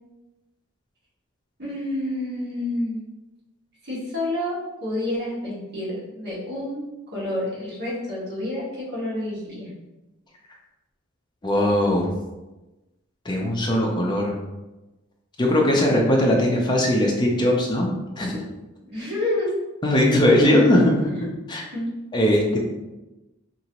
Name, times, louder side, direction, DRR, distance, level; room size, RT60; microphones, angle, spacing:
voice 1, 1.6-3.0 3.8-6.9 7.1-9.7 18.8-19.5 20.1-20.2 21.7-21.9, left 1 dB, 50° right, -7 dB, 1.3 m, -29 dB
voice 2, 11.4-12.1 13.3-14.4 15.4-18.4 19.8-21.6 22.1-22.6, left 1 dB, 20° left, -1 dB, 0.5 m, -20 dB
2.9 x 2.6 x 2.9 m, 1.1 s
head